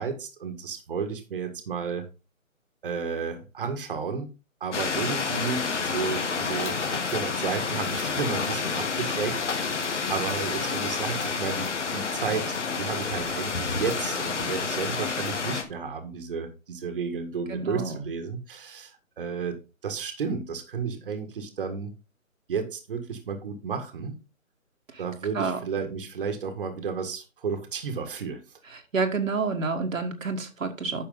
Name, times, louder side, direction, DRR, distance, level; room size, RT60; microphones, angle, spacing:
voice 1, 0.0-2.1 2.8-4.3 4.6-21.9 22.5-24.1 25.0-28.4, right 5 dB, 40° right, 6 dB, 1.7 m, -32 dB
sound 1, 4.7-15.6, left 5 dB, 55° left, 2.1 m, -29 dB
voice 2, 17.5-18.1 24.9-25.0 25.3-25.6 28.7-31.1, right 4 dB, 65° right, 4 dB, 1.8 m, -29 dB
9.5 x 6.6 x 3.8 m, 0.29 s
hypercardioid pair, 160°, 42 cm